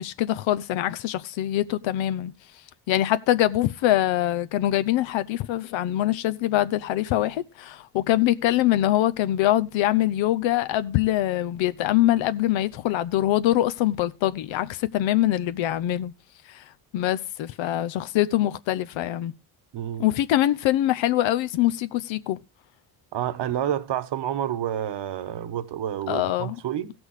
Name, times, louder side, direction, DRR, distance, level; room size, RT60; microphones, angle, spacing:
voice 1, 0.0-2.3 2.9-16.1 16.5-16.6 16.9-19.3 20.0-22.4 26.1-26.6, left 14 dB, 80° left, 0.7 m, -24 dB
voice 2, 19.7-20.1 23.1-26.9, right 10 dB, 65° right, 1.2 m, -29 dB
15.0 x 6.2 x 4.8 m
cardioid pair, 80°, 45 cm